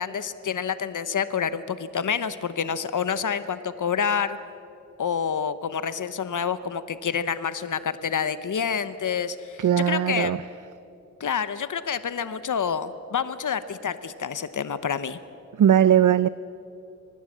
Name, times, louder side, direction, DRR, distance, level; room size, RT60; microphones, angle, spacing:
voice 1, 0.0-4.4 5.0-10.3 11.2-15.2, left 7 dB, 85° left, 13 dB, 0.8 m, -28 dB
voice 2, 9.6-10.4 15.6-16.3, right 9 dB, 80° right, 16 dB, 0.5 m, -19 dB
25.0 x 19.0 x 7.4 m, 2.9 s
wide cardioid pair, 70°, 30 cm